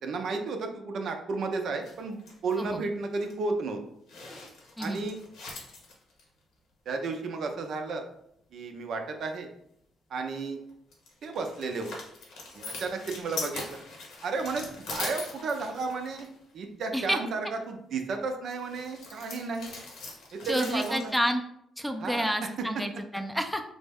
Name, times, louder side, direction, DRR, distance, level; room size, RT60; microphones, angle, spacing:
voice 1, 0.0-3.8 4.8-5.1 6.9-8.0 8.5-9.5 10.1-10.6 11.2-11.9 12.5-13.8 14.2-16.3 16.5-19.7 20.3-21.0 22.0-22.3, right 4 dB, 65° right, 4 dB, 0.5 m, -33 dB
sound 1, 1.8-2.8 3.2-3.3 4.1-6.2 10.7-16.4 18.6-21.1, left 3 dB, 80° left, 0.9 m, -41 dB
voice 2, 20.5-21.4 21.8-23.6, equal, ahead, 5 dB, 0.4 m, -29 dB
3.3 x 2.0 x 3.4 m, 0.74 s
supercardioid pair, 65°, 0 cm